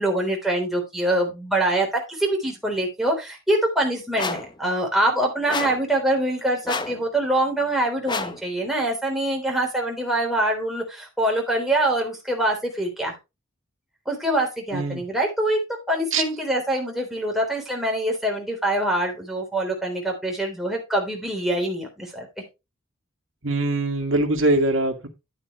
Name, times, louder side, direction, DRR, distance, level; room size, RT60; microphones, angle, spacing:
voice 1, 0.0-13.1 14.1-15.6 15.9-22.3, right 1 dB, ahead, 3.5 m, -24 dB
sound 1, 4.2-4.5 5.5-5.9 6.6-7.0 8.1-8.4, left 4 dB, 20° left, 0.7 m, -29 dB
voice 2, 14.7-15.0 16.1-16.2 23.4-25.1, right 2 dB, 70° right, 2.0 m, -22 dB
11.0 x 8.7 x 3.1 m
head